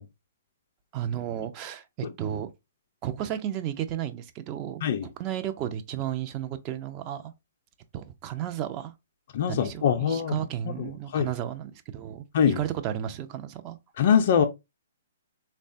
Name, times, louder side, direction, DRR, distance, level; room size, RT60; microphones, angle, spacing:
voice 1, 0.9-2.5 3.0-7.3 7.9-8.9 9.5-13.8, right 10 dB, 30° right, 0.4 m, -33 dB
voice 2, 9.3-10.4 10.7-11.3 12.3-12.6 14.0-14.5, left 8 dB, 50° left, 0.3 m, -23 dB
3.3 x 2.1 x 2.5 m
figure-of-eight pair, 120°, 0 cm